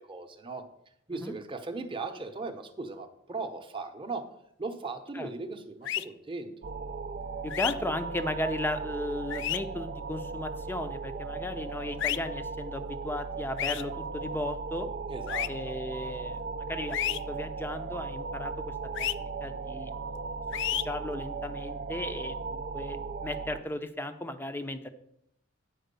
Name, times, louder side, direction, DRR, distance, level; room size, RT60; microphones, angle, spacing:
voice 1, 0.1-0.7 1.1-4.3 4.6-6.7 15.1-15.5, right 3 dB, 25° right, 5 dB, 0.8 m, -38 dB
sound 1, 5.9-6.1 7.5-7.7 9.3-9.6 12.0-12.2 13.6-13.8 15.3-15.5 16.9-17.2 19.0-19.1 20.5-20.8, left 12 dB, 65° left, 0.4 m, -30 dB
sound 2, 6.6-23.6, right 4 dB, 45° right, 0.4 m, -37 dB
voice 2, 7.4-14.9 15.5-18.7 19.0-19.9 20.5-24.9, left 1 dB, 10° left, 9 dB, 0.6 m, -36 dB
9.1 x 4.6 x 6.7 m, 0.75 s
head